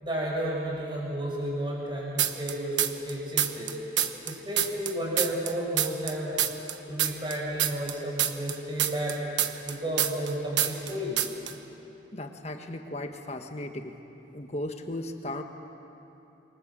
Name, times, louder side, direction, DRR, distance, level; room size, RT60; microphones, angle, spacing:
voice 1, 0.0-3.7 4.3-6.4 6.9-9.2 9.6-11.3, right 1 dB, 25° right, -3 dB, 6.1 m, -32 dB
sound 1, 2.2-3.1 3.4-6.1 6.4-10.3 10.6-10.9 11.2-11.5, right 11 dB, 80° right, 1.2 m, -26 dB
voice 2, 12.1-14.0 14.3-15.4, left 1 dB, 35° left, 5 dB, 1.4 m, -36 dB
27.5 x 23.5 x 7.5 m, 3.0 s
head